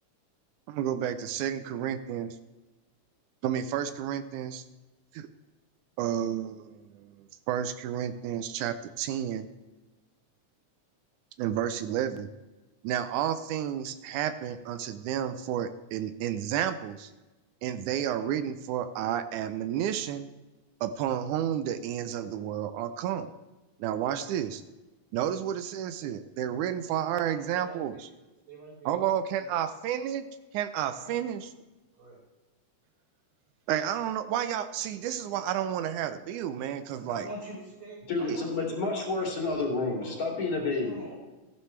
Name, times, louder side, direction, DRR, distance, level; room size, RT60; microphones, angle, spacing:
voice 1, 0.7-2.4 3.4-4.6 5.1-5.3 6.0-7.2 7.5-9.5 11.4-12.3 12.8-17.1 17.6-20.3 20.8-23.3 23.8-24.6 25.1-28.1 28.9-30.2 30.5-31.5 33.7-37.3 38.3-38.4, right 10 dB, 85° right, 10 dB, 2.1 m, -31 dB
voice 2, 26.9-28.0 28.5-29.4 31.0-31.2 32.0-32.2 37.0-39.5 40.0-40.2 40.8-41.2, right 1 dB, 60° right, -4 dB, 5.8 m, -45 dB
voice 3, 38.1-41.1, left 3 dB, 50° left, -1 dB, 3.8 m, -30 dB
15.0 x 11.0 x 3.2 m, 1.1 s
omnidirectional pair, 3.4 m